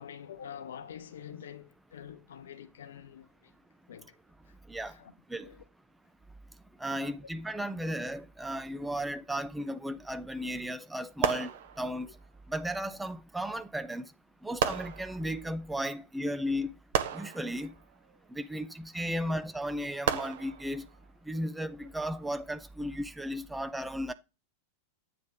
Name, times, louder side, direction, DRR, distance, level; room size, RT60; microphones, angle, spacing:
voice 1, 0.0-3.3 3.9-4.1 4.9-5.1 5.4-5.6 7.0-7.1 19.2-19.3, left 8 dB, 65° left, 0.6 m, -46 dB
voice 2, 6.8-11.5 11.8-12.1 12.5-14.1 14.4-16.7 17.1-17.7 18.4-20.8 21.3-24.1, equal, 5° right, 0.4 m, -35 dB
Gun Shots - Pistols, 11.2-12.2 13.6-13.7 14.6-15.6 16.9-18.2 20.1-21.1 21.8-22.1, right 8 dB, 55° right, 0.7 m, -34 dB
8.4 x 3.1 x 5.0 m
figure-of-eight pair, 90°, 0 cm